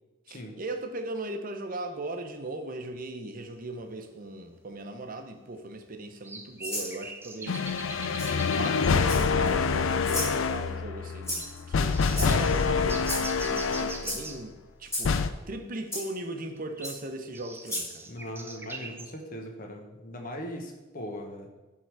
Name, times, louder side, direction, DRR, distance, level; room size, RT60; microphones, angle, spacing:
voice 1, 0.3-18.1, right 2 dB, 45° right, 6 dB, 0.8 m, -38 dB
sound 1, 4.0-4.1 4.8-4.9 6.2-9.0 9.6-9.7 10.0-10.1 10.4-10.8 11.4-11.5 11.9-14.5 16.6-19.1, right 3 dB, 10° right, 0.6 m, -42 dB
Rattle (instrument), 6.6-6.9 8.2-8.3 9.0-9.5 10.0-10.3 11.2-11.6 12.1-12.5 13.0-13.3 14.0-14.2 14.9-15.1 15.9-16.0 16.8-16.9 17.6-17.9, left 1 dB, 15° left, 2.7 m, -33 dB
sound 2, 7.5-14.2 15.0-15.3, left 5 dB, 75° left, 0.4 m, -26 dB
voice 2, 18.1-21.5, equal, 45° left, 2 dB, 1.2 m, -39 dB
11.0 x 3.8 x 4.6 m, 1.1 s
head